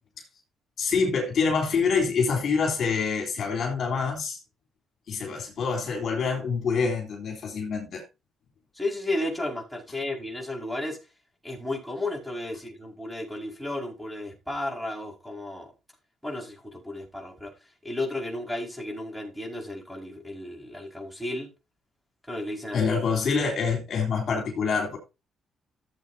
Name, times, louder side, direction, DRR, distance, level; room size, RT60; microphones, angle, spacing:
voice 1, 0.8-4.4 5.1-8.0 22.7-25.0, left 5 dB, 60° left, 3.4 m, -26 dB
voice 2, 8.7-11.0 11.4-15.7 16.2-17.5 17.8-21.5 22.3-22.8, left 1 dB, 5° left, 5.0 m, -33 dB
14.5 x 7.9 x 2.7 m
cardioid pair, 90°, 0 cm